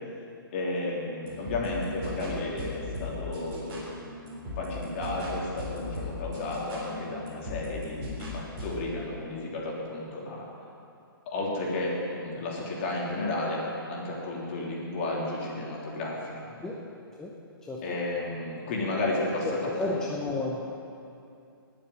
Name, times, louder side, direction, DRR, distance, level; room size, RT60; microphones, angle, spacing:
voice 1, 0.5-3.8 4.6-10.5 11.3-13.6 13.9-16.6 17.8-20.0, left 2 dB, 30° left, -3 dB, 3.2 m, -32 dB
sound 1, 1.3-8.7, left 2 dB, 20° right, 3.9 m, -38 dB
voice 2, 19.8-20.6, left 2 dB, 5° left, -4 dB, 0.7 m, -32 dB
19.0 x 7.3 x 7.9 m, 2.5 s
hypercardioid pair, 165°, 12 cm